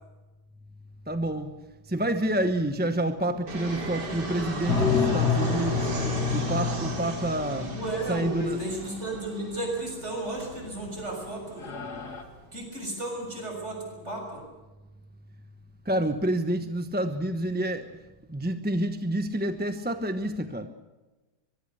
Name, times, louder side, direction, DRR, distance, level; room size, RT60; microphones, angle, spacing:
voice 1, 1.1-1.5 1.9-5.9 6.3-7.7 8.1-8.6 15.9-17.9 18.3-20.7, right 1 dB, 10° right, 8 dB, 0.7 m, -28 dB
Fixed-wing aircraft airplane, 3.5-12.5, right 2 dB, 80° right, 3.7 m, -37 dB
sound 1, 4.7-8.6 10.4-10.9 11.2-11.3 11.6-12.2, left 5 dB, 70° left, 2.8 m, -28 dB
voice 2, 7.7-11.8 12.5-14.4, right 1 dB, 40° right, 1 dB, 7.1 m, -33 dB
24.0 x 22.5 x 6.8 m, 1.1 s
omnidirectional pair, 1.8 m